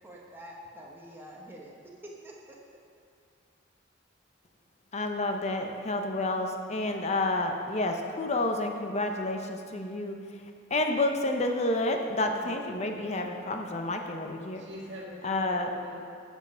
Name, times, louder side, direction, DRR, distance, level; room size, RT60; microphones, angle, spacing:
voice 1, 0.0-1.7 2.0-2.6, equal, 10° right, -3 dB, 0.9 m, -46 dB
voice 2, 4.9-10.4 10.7-14.6 15.2-15.7, left 2 dB, 35° left, 4 dB, 0.6 m, -30 dB
voice 3, 12.4-13.1 14.5-16.1, left 1 dB, 60° right, -3 dB, 2.1 m, -44 dB
10.5 x 6.3 x 5.5 m, 2.5 s
head